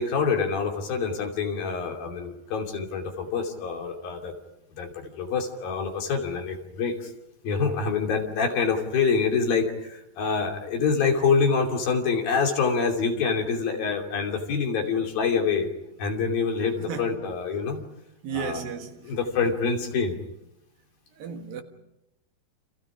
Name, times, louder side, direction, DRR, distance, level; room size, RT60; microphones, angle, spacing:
voice 1, 0.0-4.3 4.7-7.1 7.4-15.7 16.0-17.8 18.3-18.6 19.0-20.2, left 5 dB, 60° left, 4.5 m, -26 dB
voice 2, 16.8-17.1 18.2-19.2 21.2-21.6, right 6 dB, 65° right, 3.1 m, -34 dB
29.5 x 27.0 x 5.1 m
omnidirectional pair, 4.9 m